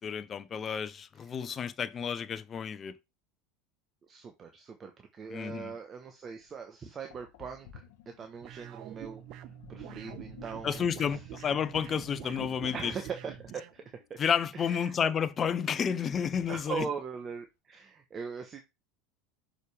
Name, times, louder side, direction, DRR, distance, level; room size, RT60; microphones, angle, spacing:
voice 1, 0.0-3.0 5.3-5.7 10.6-12.9 14.2-16.9, left 7 dB, 35° left, 0.7 m, -31 dB
voice 2, 4.1-9.2 9.7-10.8 11.1-11.2 12.7-13.8 14.1-14.2 14.5-14.9 16.5-18.6, right 5 dB, 30° right, 1.1 m, -40 dB
Sink (filling or washing), 6.4-6.5 7.1-14.4, left 10 dB, 70° left, 1.2 m, -52 dB
sound 1, 8.4-13.7, right 12 dB, 55° right, 0.7 m, -46 dB
6.5 x 5.0 x 3.4 m
hypercardioid pair, 85°, 0 cm